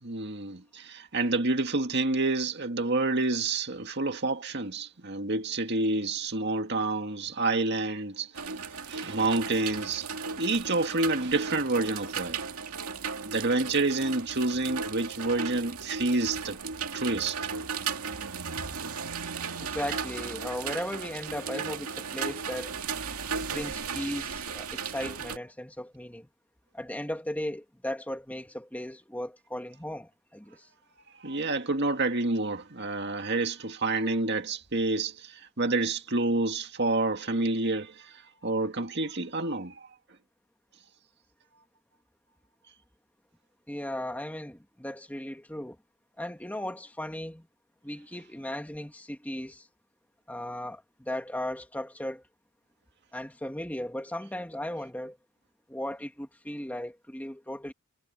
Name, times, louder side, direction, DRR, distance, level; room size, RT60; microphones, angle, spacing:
voice 1, 0.0-8.3 8.9-10.1 10.4-12.4 13.3-16.6 16.9-17.5 31.2-39.9, right 2 dB, 50° right, 2.1 m, -28 dB
sound 1, 8.3-25.4, right 5 dB, 90° right, 2.4 m, -36 dB
voice 2, 19.6-22.8 23.4-26.3 26.7-30.7 43.7-45.8 46.2-47.5 47.8-49.7 50.3-52.2 53.1-55.2 55.7-57.7, left 1 dB, 5° left, 2.2 m, -36 dB
head